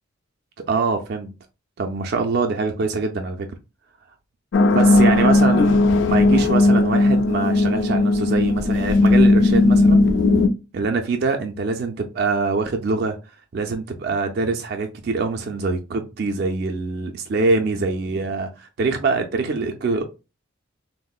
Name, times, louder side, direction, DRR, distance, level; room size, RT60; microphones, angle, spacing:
voice 1, 0.7-1.3 1.8-3.4 4.6-10.0 10.7-13.2 13.5-20.0, right 4 dB, 50° right, 0.3 m, -24 dB
sound 1, 4.5-10.5, left 2 dB, 60° left, 0.3 m, -16 dB
3.6 x 2.0 x 2.2 m
head